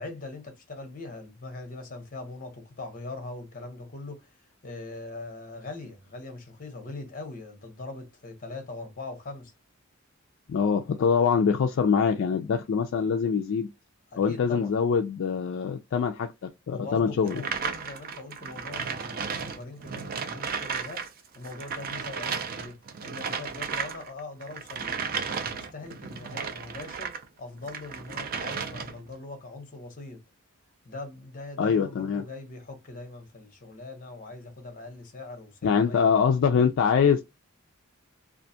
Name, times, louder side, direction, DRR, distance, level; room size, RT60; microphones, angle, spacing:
voice 1, 0.0-4.4 4.6-9.5 14.1-14.7 16.7-30.2 30.8-36.1, left 3 dB, 40° left, 0.8 m, -41 dB
voice 2, 10.5-13.7 14.2-17.4 31.6-32.2 35.6-37.2, left 6 dB, 60° left, 0.3 m, -24 dB
sound 1, 17.3-27.2 27.6-29.1, right 6 dB, 45° right, 0.4 m, -34 dB
2.4 x 2.2 x 2.6 m
head